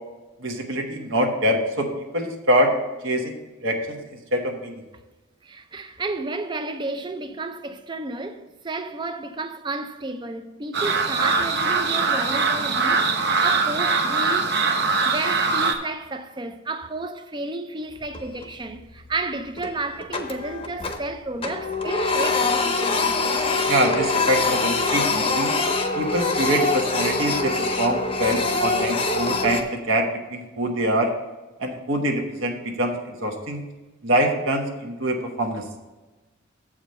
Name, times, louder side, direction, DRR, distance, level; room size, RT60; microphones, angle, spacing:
voice 1, 0.4-1.9 2.1-2.7 3.0-3.4 3.6-4.0 4.3-4.8 23.7-25.5 25.9-31.1 31.6-33.6 34.0-35.6, right 1 dB, 70° right, 1.1 m, -24 dB
voice 2, 5.4-14.6 15.0-23.2, right 2 dB, 20° right, 0.4 m, -32 dB
sound 1, 10.7-15.7, right 4 dB, 55° right, 0.8 m, -22 dB
Printer, 18.0-18.6 19.0-19.1 19.6-21.1 21.4-29.6, left 3 dB, 25° left, 0.7 m, -24 dB
7.5 x 4.9 x 6.6 m
head